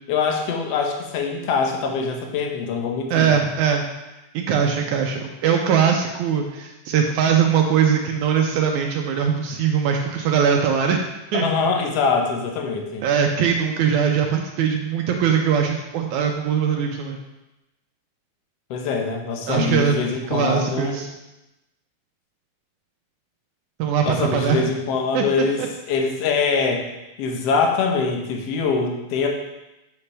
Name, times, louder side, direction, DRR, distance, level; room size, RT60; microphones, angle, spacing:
voice 1, 0.1-3.3 11.3-13.0 18.7-21.0 24.1-26.9 27.2-29.3, left 5 dB, 65° left, 2 dB, 1.7 m, -23 dB
voice 2, 3.1-3.8 4.3-11.0 11.3-11.5 13.0-17.2 19.5-20.0 20.3-21.1 23.8-24.7 25.1-25.2 25.6-25.7, right 7 dB, 80° right, 2 dB, 1.9 m, -21 dB
6.9 x 6.8 x 3.3 m, 0.96 s
omnidirectional pair, 3.6 m